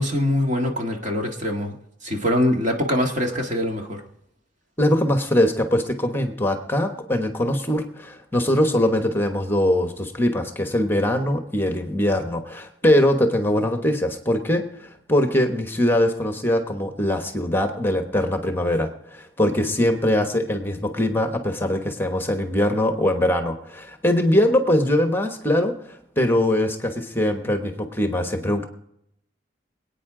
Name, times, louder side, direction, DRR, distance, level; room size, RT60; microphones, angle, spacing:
voice 1, 0.0-1.7 2.0-4.0, left 1 dB, 45° right, 2 dB, 1.8 m, -23 dB
voice 2, 4.8-28.7, left 1 dB, 15° left, 5 dB, 1.1 m, -22 dB
24.5 x 9.1 x 3.8 m, 0.76 s
head